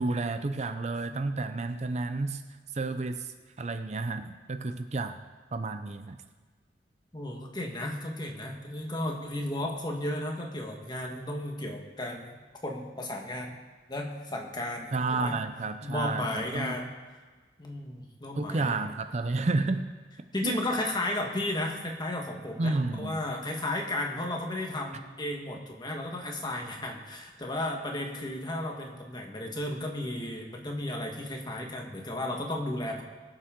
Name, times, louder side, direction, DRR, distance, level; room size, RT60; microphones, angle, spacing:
voice 1, 0.0-2.4 2.7-5.2 5.5-6.2 14.9-16.7 18.4-19.9 20.4-20.6 22.6-23.2, right 3 dB, 40° right, 9 dB, 0.5 m, -31 dB
voice 2, 7.1-12.4 12.6-13.5 13.9-15.4 15.8-16.9 17.6-18.8 20.3-33.0, left 1 dB, 25° left, 1 dB, 1.5 m, -34 dB
21.5 x 7.3 x 3.7 m, 1.4 s
head